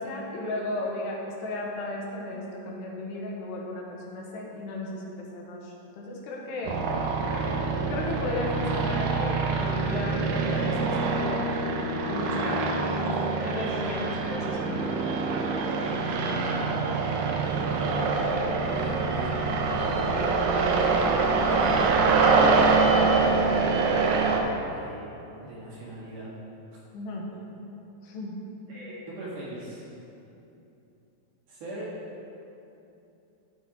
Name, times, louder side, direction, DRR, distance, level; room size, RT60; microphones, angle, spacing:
voice 1, 0.0-6.8 7.9-11.5 12.0-15.1 19.8-20.0 26.9-27.3 28.0-28.4, left 2 dB, 80° left, -2 dB, 3.1 m, -35 dB
sound 1, 6.6-24.4, right 4 dB, 85° right, 1.9 m, -25 dB
voice 2, 7.2-7.6 16.3-16.7 17.3-17.9 18.6-19.4 20.8-21.1 21.4-23.2 24.6-25.1 25.4-26.3 28.7-29.8 31.5-32.0, right 1 dB, 60° right, -8 dB, 2.7 m, -39 dB
13.5 x 6.0 x 2.8 m, 2.9 s
omnidirectional pair, 4.8 m